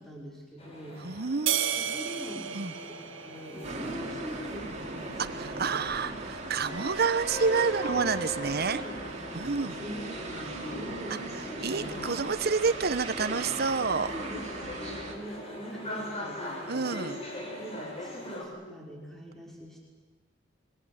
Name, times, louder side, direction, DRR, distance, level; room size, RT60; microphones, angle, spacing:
voice 1, 0.0-1.0 1.8-6.2 6.7-6.9 8.7-11.3 12.0-12.3 13.2-13.4 14.0-17.0 17.6-19.8, equal, ahead, -3 dB, 5.6 m, -43 dB
sound 1, 0.6-18.4, equal, 35° left, 5.9 m, -41 dB
voice 2, 1.0-1.8 2.5-2.7 5.2-8.8 9.3-9.7 11.3-14.1 16.7-17.2, right 5 dB, 55° right, 12 dB, 1.0 m, -29 dB
sound 2, 1.5-4.1, right 9 dB, 80° right, 1.6 m, -32 dB
sound 3, 3.6-15.1, right 3 dB, 35° right, 3.3 m, -39 dB
26.5 x 23.5 x 8.2 m, 1.2 s
head